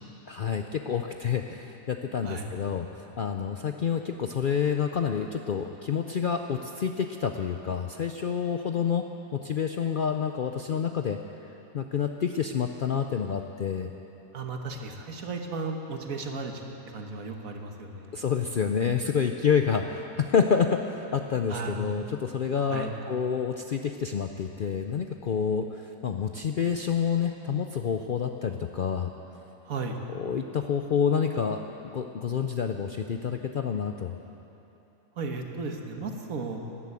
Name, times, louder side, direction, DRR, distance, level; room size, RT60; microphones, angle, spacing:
voice 1, 0.3-2.9 3.2-9.1 9.3-11.2 11.7-13.9 18.1-29.1 30.1-34.1, left 7 dB, 60° left, 5 dB, 0.5 m, -28 dB
voice 2, 14.3-16.6 16.9-18.2 21.5-21.8 22.7-22.9 29.6-30.0 35.2-36.6, right 4 dB, 75° right, 3 dB, 1.7 m, -35 dB
13.5 x 12.0 x 8.3 m, 3.0 s
omnidirectional pair, 1.5 m